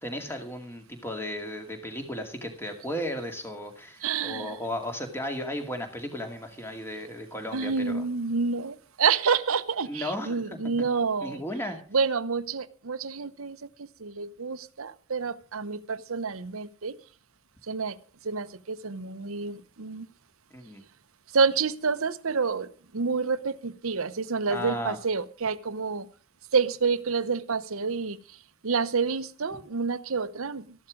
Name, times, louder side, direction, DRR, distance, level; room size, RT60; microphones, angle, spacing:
voice 1, 0.0-8.0 9.8-10.9 11.2-11.8 20.5-20.8 24.5-25.0 29.5-29.6, left 1 dB, 10° left, 5 dB, 2.2 m, -35 dB
voice 2, 4.0-4.5 7.5-11.4 11.9-17.0 17.7-18.0 18.2-20.1 21.3-26.1 26.5-28.2 28.6-30.7, right 5 dB, 75° right, 14 dB, 0.8 m, -28 dB
14.0 x 11.5 x 5.1 m, 0.40 s
head